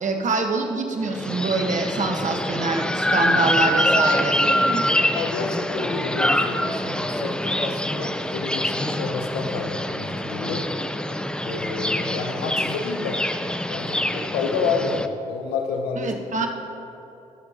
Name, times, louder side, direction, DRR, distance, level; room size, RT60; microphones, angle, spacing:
voice 1, 0.0-4.9 16.0-16.5, right 3 dB, 50° right, 3 dB, 1.3 m, -25 dB
sound 1, 1.1-15.1, left 1 dB, 5° left, 0.6 m, -25 dB
voice 2, 5.1-10.7 11.4-13.2 13.7-16.1 16.4-16.5, left 5 dB, 85° left, 4 dB, 0.9 m, -29 dB
17.5 x 6.8 x 2.9 m, 2.9 s
hypercardioid pair, 45°, 16 cm